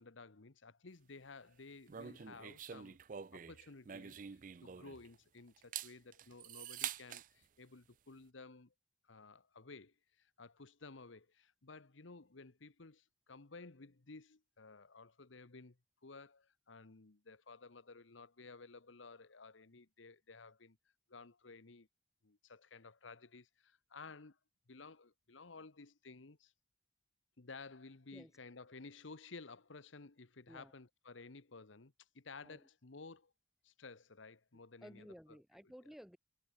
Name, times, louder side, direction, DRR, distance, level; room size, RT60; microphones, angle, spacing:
voice 1, 0.0-3.0 3.3-8.7 9.0-20.8 21.1-21.9 22.2-24.4 24.7-26.5 27.4-33.3 33.6-35.4, left 3 dB, 85° left, 1.2 m, -55 dB
sound 1, 1.9-5.1 5.6-7.3, right 9 dB, 45° right, 0.4 m, -46 dB
voice 2, 34.8-36.2, equal, ahead, 0.8 m, -55 dB
head